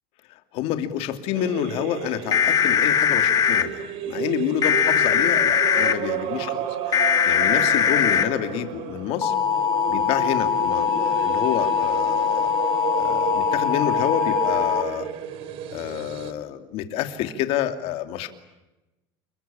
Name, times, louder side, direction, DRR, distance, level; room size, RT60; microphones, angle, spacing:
voice 1, 0.3-9.3 9.9-12.5 13.0-15.1 15.7-18.3, left 11 dB, 50° left, 7 dB, 2.7 m, -28 dB
sound 1, 1.3-16.3, right 9 dB, 50° right, 3.0 m, -32 dB
sound 2, 2.3-3.6 4.6-5.9 6.9-8.2 9.2-14.8, left 8 dB, 30° left, 2.1 m, -21 dB
29.0 x 22.5 x 8.8 m, 1.0 s
cardioid pair, 160°, 12 cm